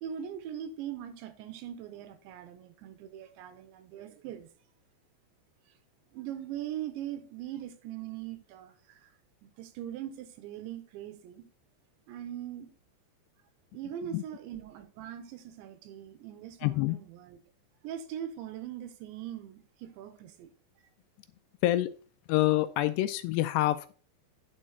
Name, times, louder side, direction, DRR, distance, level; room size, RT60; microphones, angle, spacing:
voice 1, 0.0-4.5 6.1-9.1 9.4-11.5 12.1-12.7 13.7-17.4 17.8-20.5, right 10 dB, 80° right, 3.3 m, -41 dB
voice 2, 16.6-17.0 21.6-21.9 22.3-23.9, left 15 dB, 80° left, 2.5 m, -26 dB
9.9 x 6.6 x 4.2 m
omnidirectional pair, 5.2 m